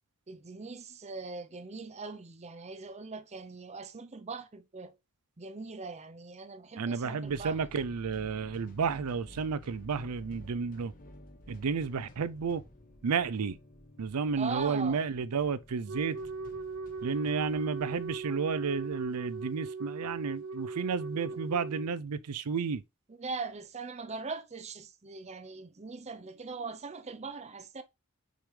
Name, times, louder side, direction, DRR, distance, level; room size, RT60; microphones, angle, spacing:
voice 1, 0.3-5.0 5.4-7.6 14.3-15.0 23.1-27.8, right 4 dB, 30° right, 0.6 m, -41 dB
voice 2, 6.8-10.9 11.5-12.6 13.0-13.6 14.0-16.2 17.0-22.8, right 5 dB, 90° right, 0.5 m, -32 dB
sound 1, 7.2-19.0, left 1 dB, 40° left, 1.1 m, -53 dB
Wind instrument woodwind instrument, 15.9-21.9, right 4 dB, 65° right, 0.9 m, -39 dB
6.4 x 5.0 x 3.3 m
head